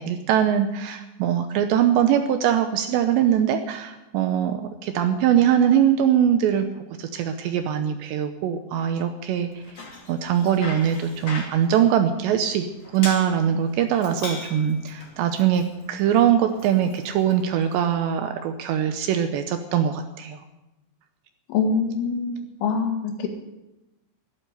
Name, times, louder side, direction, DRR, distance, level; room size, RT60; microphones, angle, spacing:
voice 1, 0.0-6.7 7.0-9.6 10.1-12.7 12.9-20.4, right 9 dB, 80° right, 8 dB, 2.7 m, -22 dB
Bicycle, 9.5-17.8, left 2 dB, 30° left, 2.3 m, -41 dB
voice 2, 21.5-23.3, left 5 dB, 75° left, 4 dB, 4.3 m, -24 dB
12.5 x 12.0 x 7.9 m, 0.98 s
omnidirectional pair, 5.7 m